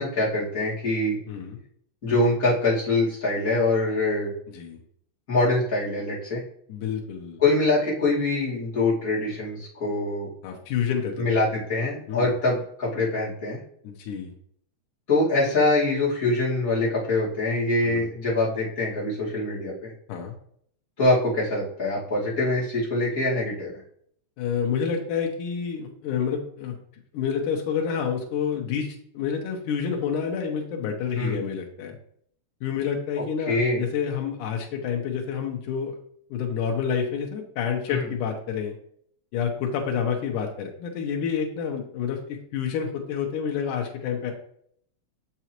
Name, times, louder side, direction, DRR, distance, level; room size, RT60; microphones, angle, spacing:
voice 1, 0.0-1.2 2.0-4.3 5.3-6.4 7.4-10.3 11.2-13.6 15.1-19.9 21.0-23.7 31.2-31.4 33.5-33.8 37.9-38.0, left 2 dB, 30° left, -8 dB, 2.8 m, -24 dB
voice 2, 1.3-1.6 4.5-4.8 6.7-7.4 10.4-11.3 12.1-12.3 13.8-14.3 17.8-18.1 20.1-20.4 24.4-26.8 27.1-32.0 32.6-35.9 36.3-38.7 39.3-44.3, left 7 dB, 85° left, 2 dB, 2.4 m, -28 dB
6.9 x 6.1 x 3.0 m, 0.64 s
omnidirectional pair, 3.5 m